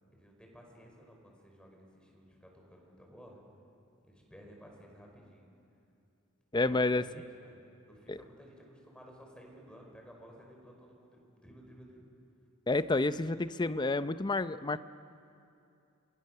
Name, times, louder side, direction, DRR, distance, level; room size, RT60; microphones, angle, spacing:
voice 1, 0.1-3.4 4.0-5.5 6.7-12.1, equal, 5° left, 0 dB, 5.2 m, -55 dB
voice 2, 6.5-7.0 8.1-8.2 12.7-14.8, left 2 dB, 20° left, 13 dB, 0.6 m, -29 dB
29.5 x 25.0 x 6.8 m, 2.6 s
head